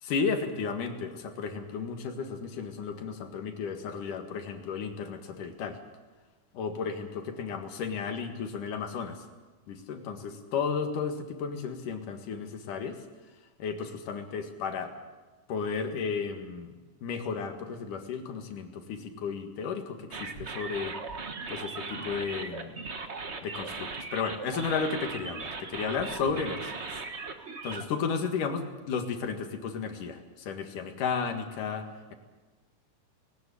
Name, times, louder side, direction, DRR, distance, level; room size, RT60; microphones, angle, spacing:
voice 1, 0.0-5.8 6.5-9.2 9.7-13.0 13.6-14.9 15.5-16.7 17.0-21.0 21.5-22.8 23.4-26.8 27.6-32.1, left 5 dB, 80° left, 6 dB, 3.3 m, -33 dB
sound 1, 20.1-27.8, right 4 dB, 60° right, 0.6 m, -38 dB
19.5 x 19.0 x 8.4 m, 1.3 s
omnidirectional pair, 3.7 m